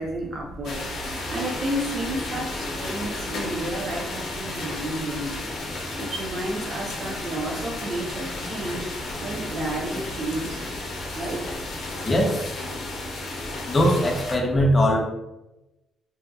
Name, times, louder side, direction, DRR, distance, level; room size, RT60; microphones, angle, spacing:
voice 1, 0.0-5.4 6.0-10.8 11.1-11.7, right 1 dB, 55° right, 0 dB, 0.7 m, -32 dB
sound 1, 0.6-14.4, left 2 dB, 70° left, 0.6 m, -33 dB
voice 2, 12.1-12.4 13.7-15.0, equal, 30° left, 0 dB, 0.6 m, -20 dB
2.7 x 2.5 x 2.3 m, 0.98 s
cardioid pair, 90°, 0 cm